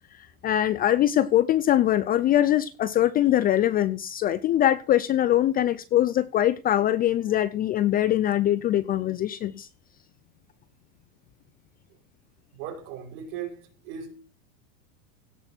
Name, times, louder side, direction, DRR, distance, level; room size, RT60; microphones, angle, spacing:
voice 1, 0.4-9.7, left 12 dB, 20° left, 0.4 m, -22 dB
voice 2, 12.5-14.2, right 8 dB, 60° right, 5.6 m, -38 dB
17.0 x 6.2 x 4.4 m
supercardioid pair, 140°, 41 cm